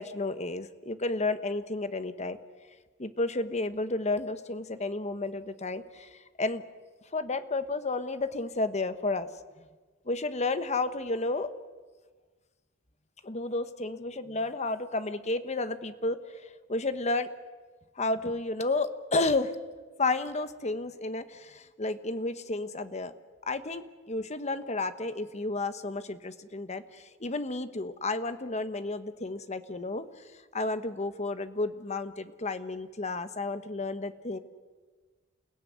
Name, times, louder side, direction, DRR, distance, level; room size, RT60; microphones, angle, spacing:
voice 1, 0.0-2.4 3.0-6.1 6.4-6.6 7.1-9.3 10.1-11.5 13.2-16.2 16.7-17.3 18.0-19.6 20.0-23.1 23.5-30.1 30.5-34.4, left 2 dB, 35° left, 11 dB, 1.2 m, -31 dB
29.0 x 17.0 x 9.4 m, 1.4 s
head